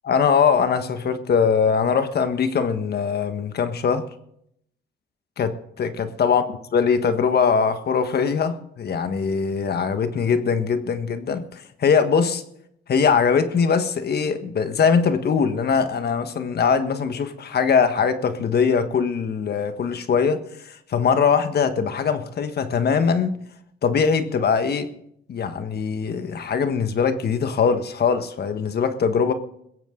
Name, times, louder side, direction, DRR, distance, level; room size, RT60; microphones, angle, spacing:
voice 1, 0.0-4.0 5.4-6.4 6.7-12.4 12.9-20.4 20.6-23.4 23.8-24.9 25.3-29.3, left 6 dB, 55° left, 9 dB, 1.4 m, -21 dB
21.5 x 15.5 x 3.8 m, 0.73 s
cardioid pair, 90°, 20 cm